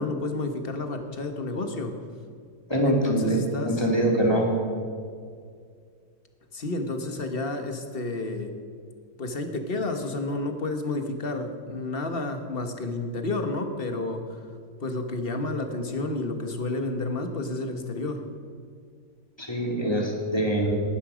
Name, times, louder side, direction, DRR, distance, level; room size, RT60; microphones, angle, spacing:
voice 1, 0.0-2.0 2.8-3.8 6.5-8.5 9.2-14.4 14.8-18.2, left 2 dB, 35° left, 6 dB, 1.4 m, -30 dB
voice 2, 2.7-3.4 3.7-4.5 19.4-20.7, right 1 dB, 15° left, -1 dB, 2.5 m, -24 dB
19.0 x 11.5 x 5.1 m, 2.1 s
omnidirectional pair, 1.8 m